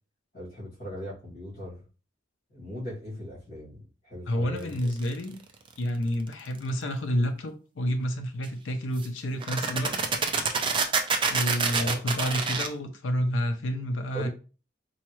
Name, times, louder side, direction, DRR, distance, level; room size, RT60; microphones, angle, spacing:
voice 1, 0.3-1.8 2.5-4.9 11.7-12.0 14.1-14.3, equal, 50° left, 2.0 m, -39 dB
voice 2, 4.3-5.4 5.8-9.9 11.3-14.3, equal, 80° left, 0.6 m, -29 dB
sound 1, 4.9-5.2 8.4-8.5 9.0-9.1 9.4-12.7, right 5 dB, 25° right, 0.4 m, -27 dB
4.2 x 2.3 x 3.0 m
head